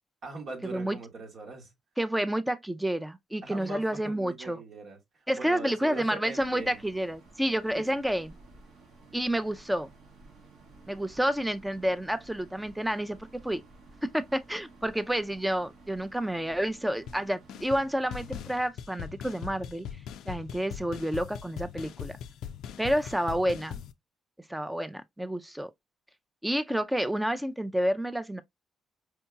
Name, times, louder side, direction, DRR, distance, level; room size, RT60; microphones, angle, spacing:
voice 1, 0.2-1.7 3.4-6.8 7.7-7.9, right 3 dB, 60° right, 1.2 m, -42 dB
voice 2, 2.0-4.6 5.3-8.3 9.1-9.9 10.9-13.6 14.0-19.9 20.3-22.2 22.8-23.8 24.5-25.7 26.4-28.4, equal, 5° right, 0.4 m, -29 dB
sound 1, 6.4-18.4, right 3 dB, 85° right, 1.4 m, -54 dB
sound 2, 17.1-17.2 17.5-17.8 18.1-23.9, left 9 dB, 80° left, 0.3 m, -41 dB
4.6 x 2.7 x 2.2 m
cardioid pair, 90°, 0 cm